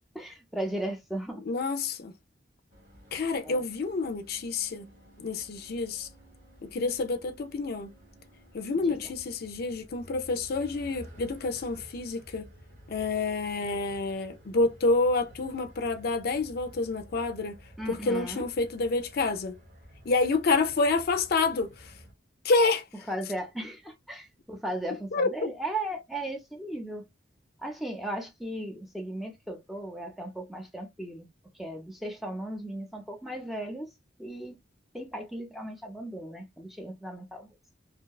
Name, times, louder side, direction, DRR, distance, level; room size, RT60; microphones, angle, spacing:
voice 1, 0.1-1.4 3.4-3.6 8.8-9.0 17.8-18.5 23.1-27.1 27.6-31.3 31.6-33.9 34.2-34.6 34.9-37.5, right 1 dB, ahead, 0.6 m, -36 dB
voice 2, 1.5-2.1 3.1-4.9 5.2-6.1 6.6-7.9 8.5-12.5 12.9-17.6 17.9-19.6 20.0-21.9 22.4-22.8 25.1-25.5, left 3 dB, 55° left, 0.5 m, -28 dB
sound 1, 2.7-22.1, equal, 50° right, 1.2 m, -52 dB
2.7 x 2.1 x 2.3 m
head